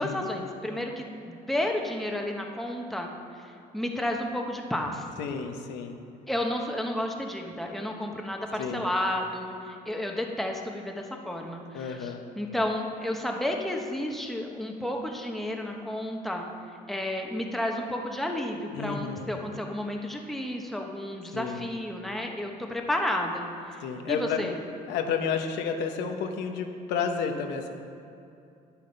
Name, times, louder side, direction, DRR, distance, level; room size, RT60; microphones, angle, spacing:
voice 1, 0.0-3.1 3.7-5.0 6.3-12.0 12.4-16.5 16.9-23.5 23.7-23.8 24.1-24.5, left 1 dB, ahead, 1 dB, 1.1 m, -31 dB
voice 2, 5.2-6.0 8.6-8.9 11.7-12.2 18.7-19.3 21.3-21.7 23.8-24.5 24.9-27.7, left 6 dB, 90° left, 4 dB, 1.0 m, -31 dB
10.0 x 8.6 x 5.4 m, 2.6 s
cardioid pair, 110°, 17 cm